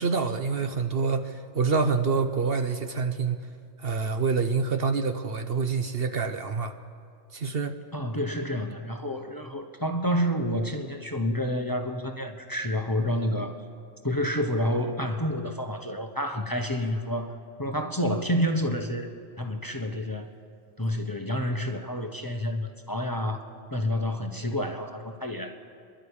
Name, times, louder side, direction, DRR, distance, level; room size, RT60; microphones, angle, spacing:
voice 1, 0.0-3.5 3.8-6.7 7.3-7.8, right 5 dB, 55° right, 7 dB, 1.0 m, -27 dB
voice 2, 7.9-13.6 14.0-19.1 19.4-20.3 20.8-25.6, equal, 20° left, 5 dB, 1.0 m, -29 dB
27.5 x 11.5 x 8.6 m, 2.2 s
omnidirectional pair, 1.3 m